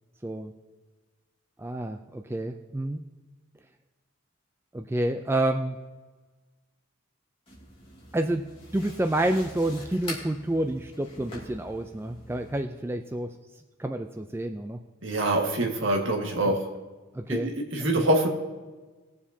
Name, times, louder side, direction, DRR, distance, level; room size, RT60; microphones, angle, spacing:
voice 1, 1.6-3.0 4.7-5.8 8.1-8.4 8.7-13.3 13.8-14.8 17.1-17.5 17.9-18.0, right 1 dB, 10° right, 5 dB, 0.3 m, -29 dB
sound 1, 7.5-12.6, left 1 dB, 25° left, 2.4 m, -44 dB
voice 2, 15.0-16.6 17.3-18.3, right 1 dB, 65° right, 1 dB, 1.7 m, -25 dB
20.5 x 7.2 x 2.7 m, 1.3 s
head